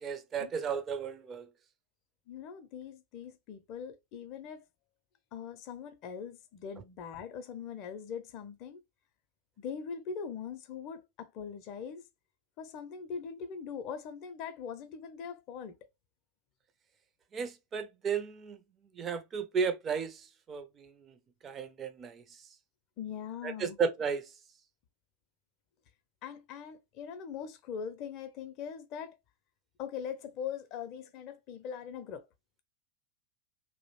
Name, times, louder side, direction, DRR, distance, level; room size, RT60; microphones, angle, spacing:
voice 1, 0.0-1.5 17.3-18.6 19.0-21.1 21.4-22.2 23.4-24.3, right 6 dB, 25° right, 0.4 m, -34 dB
voice 2, 2.3-4.7 5.3-8.8 9.6-12.1 12.6-15.8 23.0-23.8 26.2-29.2 29.8-32.3, left 7 dB, 40° left, 0.4 m, -41 dB
2.3 x 2.0 x 3.0 m
figure-of-eight pair, 90°, 0 cm